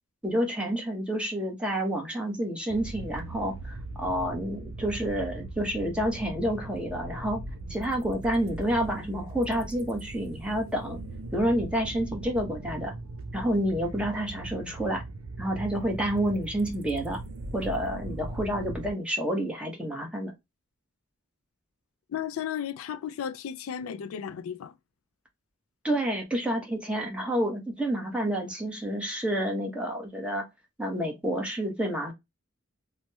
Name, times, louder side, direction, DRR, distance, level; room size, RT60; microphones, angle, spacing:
voice 1, 0.2-7.4 7.7-11.0 11.3-12.9 13.3-15.0 15.4-17.2 17.5-20.3 25.8-30.4 30.8-32.1, equal, 5° right, 1.0 m, -29 dB
sound 1, 2.7-18.9, right 2 dB, 75° right, 0.6 m, -39 dB
voice 2, 22.1-24.7, left 8 dB, 85° left, 0.3 m, -34 dB
3.1 x 2.1 x 2.9 m
head